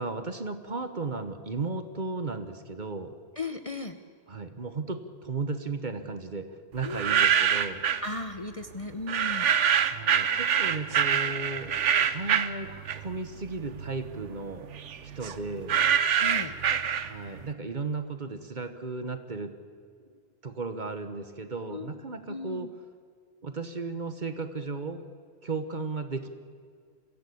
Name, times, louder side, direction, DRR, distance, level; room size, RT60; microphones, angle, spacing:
voice 1, 0.0-3.1 4.3-6.5 6.7-7.8 9.8-14.7 15.0-15.7 17.0-19.5 20.0-20.1 20.4-22.7 23.4-25.0 25.4-26.3, right 3 dB, 40° right, 9 dB, 1.2 m, -35 dB
voice 2, 3.4-4.0 6.8-7.2 8.0-9.5 16.2-16.5 21.7-22.0 22.3-22.7, left 2 dB, 30° left, 7 dB, 0.9 m, -36 dB
sound 1, 6.8-8.1 9.1-13.3 13.7-17.4, right 8 dB, 70° right, 1.2 m, -25 dB
23.5 x 16.0 x 8.5 m, 2.1 s
omnidirectional pair, 1.3 m